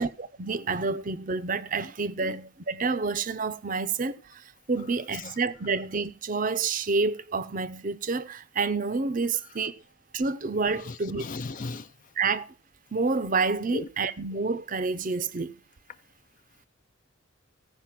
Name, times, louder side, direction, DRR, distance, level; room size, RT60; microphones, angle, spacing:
voice 1, 0.0-9.8 10.1-11.2 12.2-12.5 12.9-15.6, right 4 dB, 40° right, 0.6 m, -29 dB
voice 2, 10.8-11.9 13.7-13.9, left 3 dB, 35° left, 0.5 m, -36 dB
16.0 x 5.4 x 5.9 m
head